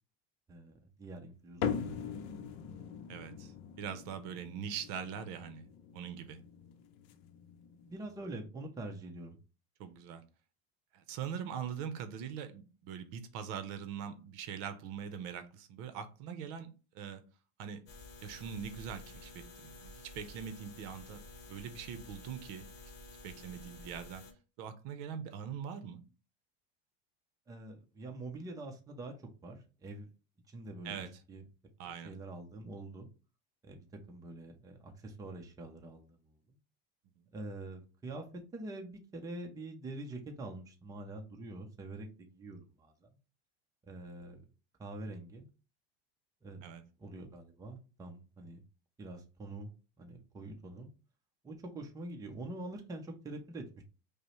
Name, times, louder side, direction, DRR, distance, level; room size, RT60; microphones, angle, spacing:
voice 1, 0.5-2.3 7.8-9.4 27.5-30.1 30.5-31.4 31.8-33.1 33.6-36.6 37.3-43.1 43.9-44.4 44.8-45.5 46.4-46.6 47.0-48.6 49.0-50.9 51.4-53.8, right 2 dB, 10° right, 0.6 m, -45 dB
sound 1, 1.6-8.3, left 7 dB, 70° left, 0.6 m, -42 dB
voice 2, 3.1-3.5 3.8-5.7 5.9-6.4 9.8-10.2 10.9-17.2 17.6-17.8 18.2-22.7 23.2-24.2 24.6-26.0 30.8-31.1 31.8-32.1 46.6-46.8, right 8 dB, 60° right, 0.7 m, -42 dB
sound 2, 17.9-24.3, left 2 dB, 35° left, 0.9 m, -52 dB
5.2 x 2.1 x 3.1 m
supercardioid pair, 140°, 31 cm